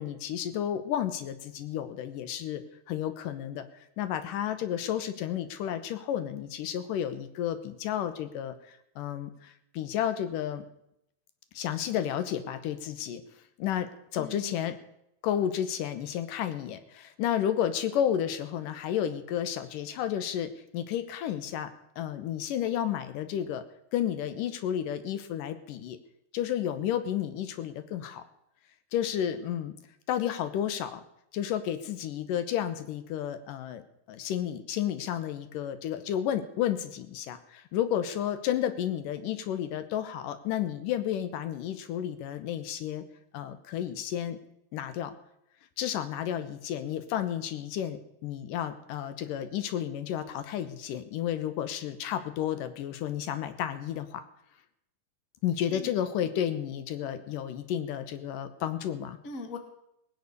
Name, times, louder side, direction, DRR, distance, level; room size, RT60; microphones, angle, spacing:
voice 1, 0.0-2.6 2.9-3.6 4.0-10.7 11.5-13.2 13.6-14.8 15.2-23.6 23.9-26.0 26.3-28.2 28.9-29.7 30.1-31.0 31.3-43.0 43.3-44.4 44.7-45.1 45.8-54.2 55.4-59.2, left 10 dB, 80° left, 11 dB, 2.6 m, -32 dB
voice 2, 14.2-14.5 55.7-56.3 59.2-59.6, left 4 dB, 35° left, 6 dB, 1.5 m, -41 dB
18.5 x 9.6 x 6.7 m, 0.77 s
omnidirectional pair, 3.8 m